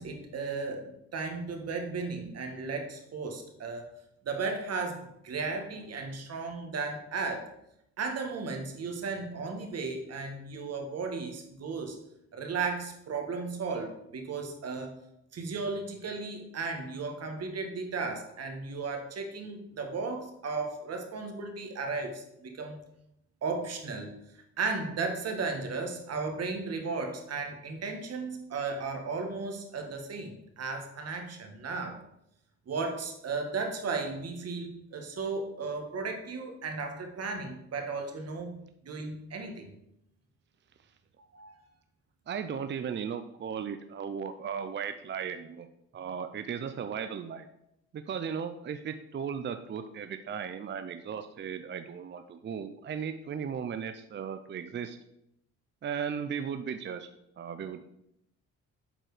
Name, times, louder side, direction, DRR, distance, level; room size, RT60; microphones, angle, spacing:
voice 1, 0.0-3.9 4.2-7.5 8.0-12.0 12.3-15.0 15.3-22.8 23.4-24.2 24.6-32.0 32.7-38.6 38.8-39.7 41.3-41.5, right 4 dB, 55° right, 4 dB, 1.6 m, -35 dB
voice 2, 42.3-45.7 45.9-47.4 47.9-55.0 55.8-57.1 57.4-57.9, right 7 dB, 40° right, 9 dB, 0.5 m, -36 dB
7.7 x 4.4 x 4.9 m, 0.78 s
cardioid pair, 90°, 30 cm